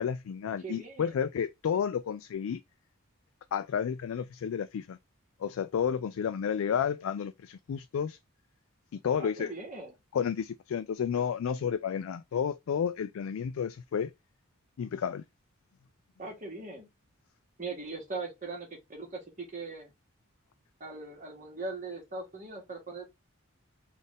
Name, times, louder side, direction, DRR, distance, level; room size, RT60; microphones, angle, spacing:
voice 1, 0.0-2.6 3.5-5.0 5.4-8.2 8.9-9.5 10.1-14.1 14.8-15.2, left 7 dB, 80° left, 0.3 m, -31 dB
voice 2, 0.6-1.1 9.2-9.9 16.2-16.9 17.6-19.9 20.8-23.1, right 3 dB, 35° right, 1.6 m, -40 dB
4.0 x 2.5 x 3.5 m
head